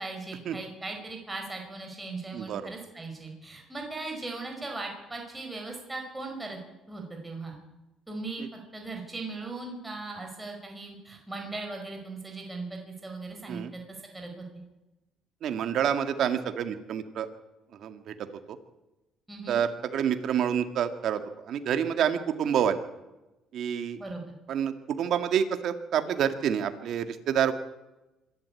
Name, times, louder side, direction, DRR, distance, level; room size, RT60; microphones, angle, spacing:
voice 1, 0.0-6.6 6.9-7.6 8.1-13.8 14.1-14.6 19.3-19.6 24.0-24.2, right 3 dB, 10° right, 1 dB, 5.1 m, -38 dB
voice 2, 15.4-17.3 17.8-18.1 19.5-21.2 21.5-22.8 23.5-24.0 24.5-27.5, right 8 dB, 60° right, 8 dB, 2.1 m, -28 dB
25.5 x 12.0 x 8.6 m, 1.0 s
cardioid pair, 110°, 0 cm